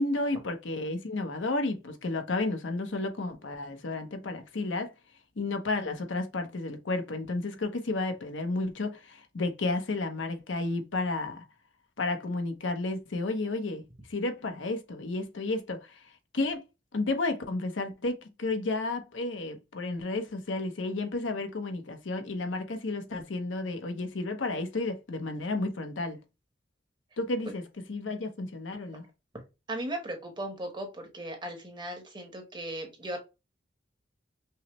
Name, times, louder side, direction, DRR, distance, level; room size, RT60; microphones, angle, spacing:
voice 1, 0.0-4.9 5.4-11.4 12.0-13.8 14.1-16.0 16.3-16.6 16.9-26.2 27.2-29.1, left 2 dB, 80° left, 0.8 m, -32 dB
voice 2, 29.7-33.2, right 1 dB, 25° right, 1.1 m, -37 dB
5.6 x 2.0 x 3.0 m
head